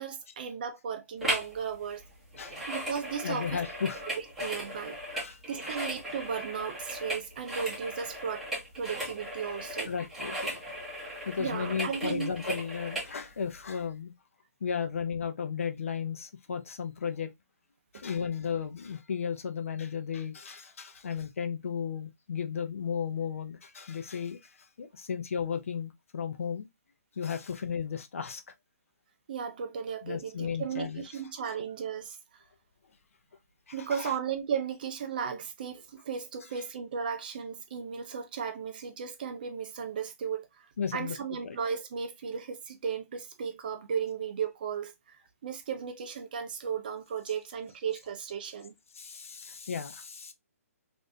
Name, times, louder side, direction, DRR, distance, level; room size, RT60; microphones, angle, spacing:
voice 1, 0.0-2.0 2.7-3.6 4.0-5.0 5.5-8.5 8.7-9.9 11.4-12.3 17.9-18.0 29.3-32.5 33.7-40.7 40.9-48.7, right 7 dB, 35° right, 0.5 m, -35 dB
sound 1, 1.2-1.6 1.8-13.1 13.6-13.7, right 1 dB, ahead, 0.9 m, -37 dB
voice 2, 3.2-4.0 5.1-5.4 9.9-10.6 11.2-14.1 14.6-17.3 17.9-24.5 24.8-26.7 27.2-28.4 30.0-31.0 33.7-34.1 40.8-41.6 49.0-50.3, left 7 dB, 60° left, 0.7 m, -34 dB
3.2 x 2.6 x 2.6 m
hypercardioid pair, 165°, 8 cm